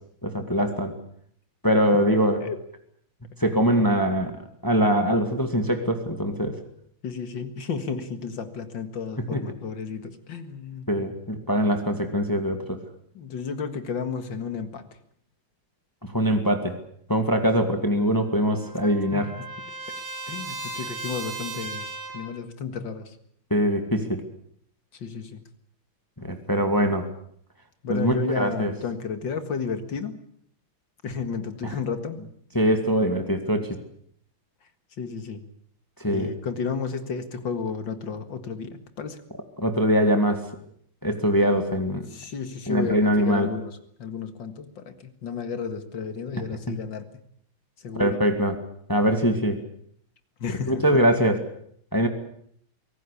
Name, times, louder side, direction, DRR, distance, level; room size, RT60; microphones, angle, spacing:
voice 1, 0.2-0.9 1.6-2.4 3.4-4.3 4.6-6.6 9.2-9.4 10.9-12.8 16.1-16.7 17.1-19.3 23.5-24.2 26.2-27.1 27.9-28.7 31.6-31.7 32.5-33.8 36.0-36.3 39.6-40.4 41.0-42.0 42.7-43.5 48.0-48.6 48.9-49.6 50.7-51.4 51.9-52.1, equal, 10° left, 6 dB, 2.1 m, -22 dB
voice 2, 7.0-11.2 13.1-14.9 19.1-19.3 20.3-21.9 22.1-23.2 24.9-25.4 27.8-30.2 31.0-32.2 35.0-35.4 36.1-39.2 42.1-47.1 47.8-48.2 50.4-50.8, left 5 dB, 65° left, 9 dB, 2.5 m, -32 dB
Trumpet, 18.0-22.4, right 3 dB, 50° right, 4.5 m, -37 dB
25.0 x 18.0 x 8.4 m, 0.66 s
omnidirectional pair, 2.2 m